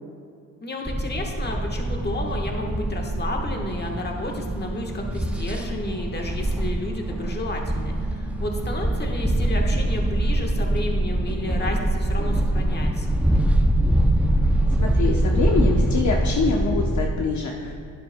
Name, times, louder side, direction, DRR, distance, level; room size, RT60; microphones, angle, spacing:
voice 1, 0.6-13.2, left 2 dB, 30° left, 1 dB, 1.3 m, -32 dB
on the S-Bahn in Berlin, 0.9-17.1, right 1 dB, 5° right, 0.5 m, -23 dB
sound 1, 1.9-11.9, right 8 dB, 55° right, 0.5 m, -39 dB
voice 2, 14.8-17.7, left 4 dB, 55° left, 0 dB, 0.8 m, -25 dB
10.5 x 10.0 x 2.2 m, 2.4 s
cardioid pair, 100°, 34 cm